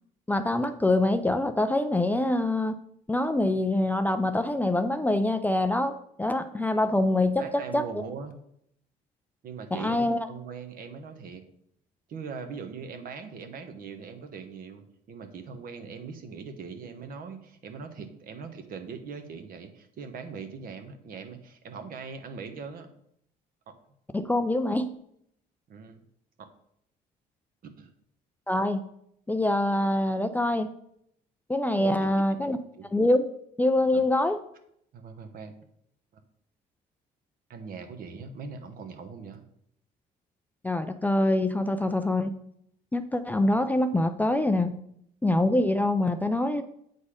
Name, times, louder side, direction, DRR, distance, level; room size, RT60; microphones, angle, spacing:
voice 1, 0.3-2.8 3.1-8.0 9.7-10.3 24.1-24.9 28.5-28.9 29.3-30.7 31.5-32.6 32.9-33.3 33.6-34.4 40.6-42.4 42.9-44.8 45.2-46.6, left 1 dB, 10° left, 9 dB, 0.4 m, -25 dB
voice 2, 7.3-8.4 9.4-11.4 12.1-22.9 23.7-23.8 25.7-26.0 26.4-26.5 27.6-27.9 31.8-32.1 32.4-32.9 33.9-34.0 34.9-35.5 37.5-39.4, right 5 dB, 60° right, 7 dB, 1.1 m, -41 dB
8.5 x 4.1 x 5.0 m, 0.73 s
cardioid pair, 110°, 17 cm